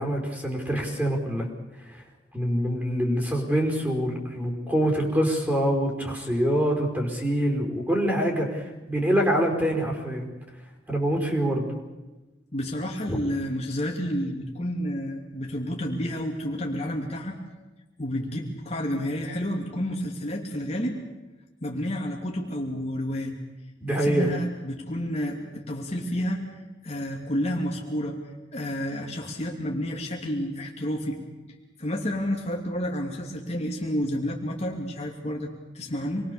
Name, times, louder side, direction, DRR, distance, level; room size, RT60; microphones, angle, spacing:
voice 1, 0.0-1.5 1.9-2.0 2.3-10.2 10.9-11.7 13.1-13.2 23.8-24.3, equal, 10° right, 1 dB, 5.0 m, -25 dB
voice 2, 12.5-17.4 18.0-21.0 21.6-23.4 23.9-26.5 26.8-28.2 28.5-31.2 31.8-36.3, equal, 35° left, 0 dB, 2.8 m, -30 dB
27.5 x 21.5 x 7.0 m, 1.1 s
head